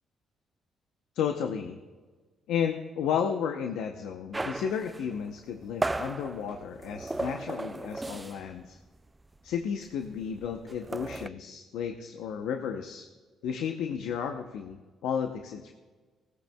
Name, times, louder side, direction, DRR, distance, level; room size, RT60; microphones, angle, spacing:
voice 1, 1.1-1.8 2.5-8.8 9.4-13.1 13.4-15.7, left 7 dB, 90° left, 5 dB, 0.7 m, -33 dB
sound 1, 4.3-8.6 8.9-9.1 9.4-11.3, right 2 dB, 15° right, 0.3 m, -36 dB
18.0 x 14.5 x 2.3 m, 1.4 s
cardioid pair, 90°, 0 cm